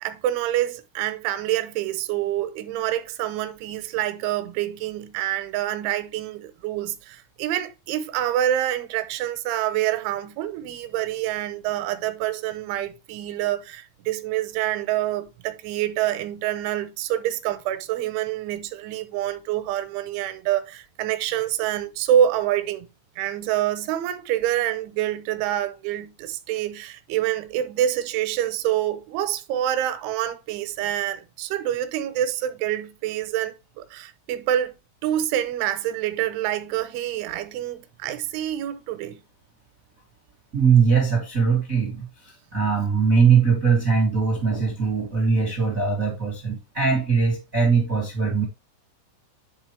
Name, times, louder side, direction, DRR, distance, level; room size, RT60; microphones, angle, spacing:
voice 1, 0.0-22.9 23.2-34.7 35.0-39.2, right 12 dB, 80° right, 2.9 m, -26 dB
voice 2, 40.5-48.4, right 5 dB, 60° right, 0.8 m, -21 dB
11.0 x 4.0 x 3.2 m
omnidirectional pair, 5.8 m